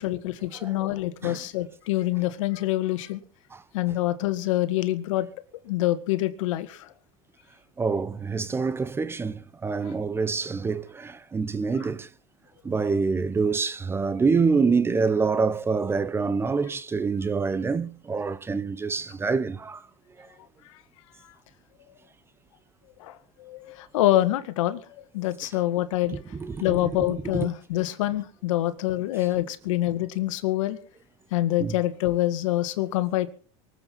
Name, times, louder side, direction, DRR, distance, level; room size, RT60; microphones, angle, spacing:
voice 1, 0.0-3.2 3.7-5.3 5.7-6.9 23.0-26.2 26.6-30.8 31.3-33.3, left 15 dB, 80° left, 1.8 m, -26 dB
voice 2, 7.8-12.1 12.6-19.8 20.2-20.3 26.1-27.1 27.3-27.5 31.6-31.7, right 4 dB, 15° right, 0.8 m, -26 dB
24.0 x 8.1 x 5.6 m
supercardioid pair, 135°, 16 cm